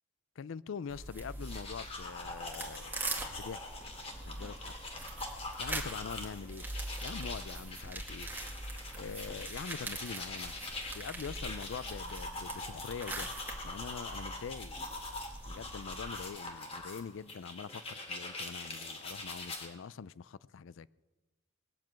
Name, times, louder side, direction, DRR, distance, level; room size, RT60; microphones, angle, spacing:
voice 1, 0.4-2.9 3.4-3.7 4.2-4.7 5.6-6.6 7.0-8.3 8.9-10.6 10.9-13.4 13.6-14.8 15.5-20.9, left 6 dB, 75° left, 0.4 m, -44 dB
sound 1, 0.9-16.2, right 2 dB, 10° right, 2.0 m, -43 dB
sound 2, 1.3-19.7, left 2 dB, 30° left, 2.3 m, -43 dB
20.0 x 7.5 x 8.8 m
head